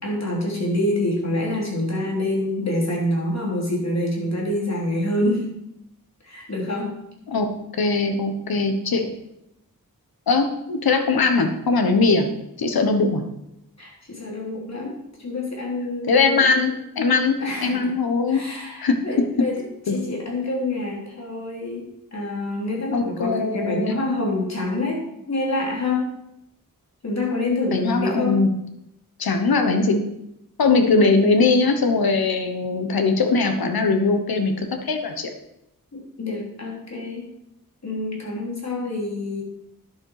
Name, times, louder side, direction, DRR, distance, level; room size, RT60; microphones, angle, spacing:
voice 1, 0.0-5.4 6.2-6.9 13.8-16.5 17.4-17.9 18.3-19.6 19.9-21.8 22.1-25.0 25.3-26.1 27.0-28.4 35.9-37.3 37.8-39.4, left 2 dB, 50° left, -2 dB, 3.5 m, -26 dB
voice 2, 7.8-9.1 10.3-12.3 12.6-13.2 16.0-18.4 18.8-19.3 19.9-20.0 22.9-24.0 27.7-28.5 29.2-30.0 30.6-35.3, left 3 dB, 85° left, 6 dB, 1.2 m, -20 dB
10.5 x 7.5 x 4.9 m, 0.83 s
wide cardioid pair, 80°, 35 cm